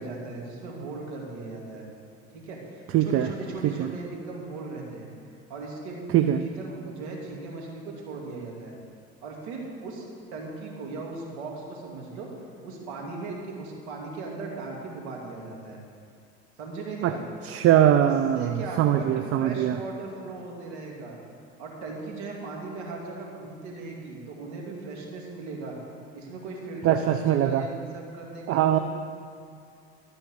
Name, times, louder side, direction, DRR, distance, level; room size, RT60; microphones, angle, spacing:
voice 1, 0.0-1.9 2.3-5.1 5.5-8.8 9.2-12.3 12.6-15.8 16.6-17.2 18.0-21.2 21.6-25.7 26.1-28.8, right 3 dB, 80° right, -1 dB, 2.4 m, -38 dB
voice 2, 2.9-3.3 3.6-3.9 6.1-6.4 17.0-17.1 17.4-19.8 26.8-27.7 28.5-28.8, right 11 dB, 45° right, 9 dB, 0.6 m, -22 dB
13.0 x 5.1 x 8.4 m, 2.3 s
hypercardioid pair, 80°, 33 cm